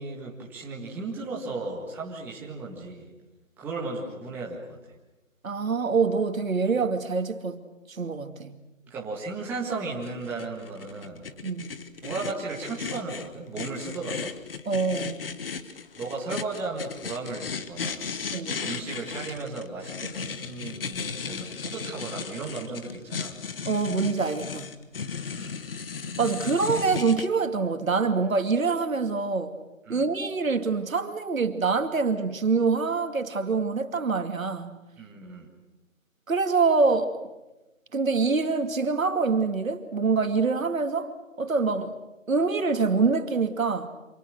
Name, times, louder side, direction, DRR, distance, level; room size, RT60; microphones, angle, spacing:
voice 1, 0.0-3.1 3.6-5.0 8.8-11.3 12.0-14.3 16.0-18.1 18.4-23.4 25.3-25.6 29.9-30.1 35.0-35.5, right 3 dB, 5° right, -4 dB, 1.8 m, -35 dB
voice 2, 5.4-8.6 11.4-11.8 14.7-15.3 18.3-18.6 23.7-24.7 26.2-29.6 29.9-34.8 36.3-37.2 37.9-41.1 41.4-42.0 42.3-43.9, right 4 dB, 80° right, 7 dB, 2.5 m, -25 dB
sound 1, 10.0-27.3, left 5 dB, 45° left, 1.5 m, -36 dB
28.5 x 27.0 x 6.5 m, 1.0 s
hypercardioid pair, 165°, 40 cm